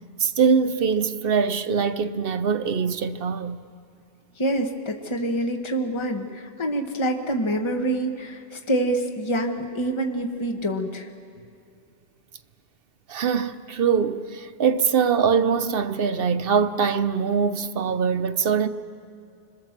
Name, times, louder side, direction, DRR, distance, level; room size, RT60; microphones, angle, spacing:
voice 1, 0.2-3.6 13.1-18.7, right 6 dB, 60° right, 0.9 m, -23 dB
voice 2, 4.4-11.1, right 1 dB, 25° left, 1.3 m, -26 dB
26.0 x 21.0 x 7.3 m
omnidirectional pair, 1.1 m